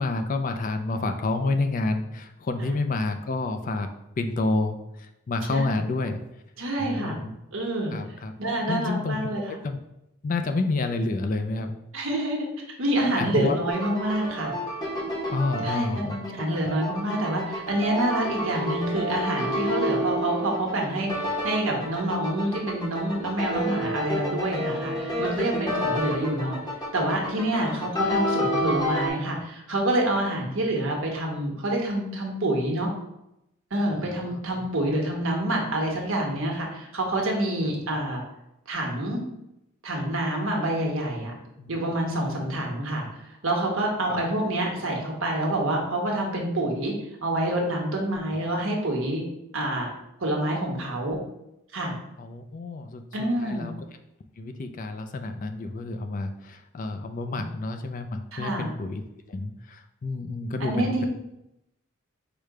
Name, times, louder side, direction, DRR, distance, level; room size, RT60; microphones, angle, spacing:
voice 1, 0.0-3.9 4.2-6.2 6.8-7.3 7.9-8.3 8.7-9.2 9.5-9.8 10.2-11.7 13.2-13.6 15.3-16.2 34.3-34.4 41.6-41.7 42.3-42.4 52.2-53.0 53.4-53.7 54.4-59.0 59.3-61.1, left 3 dB, 40° left, 7 dB, 0.3 m, -29 dB
voice 2, 6.6-7.2 7.5-7.9 8.4-9.4 11.9-12.5 12.8-14.5 15.6-26.6 26.9-32.9 33.7-38.2 38.7-39.2 39.8-41.3 41.7-43.0 43.4-46.9 47.2-49.2 49.5-49.9 50.2-51.2 51.7-51.9 53.1-53.7 57.3-57.4 58.3-58.7 60.6-61.1, right 1 dB, 75° right, 0 dB, 1.1 m, -27 dB
sound 1, 13.7-29.1, equal, 20° left, 0.8 m, -29 dB
4.9 x 2.2 x 4.7 m, 0.86 s
head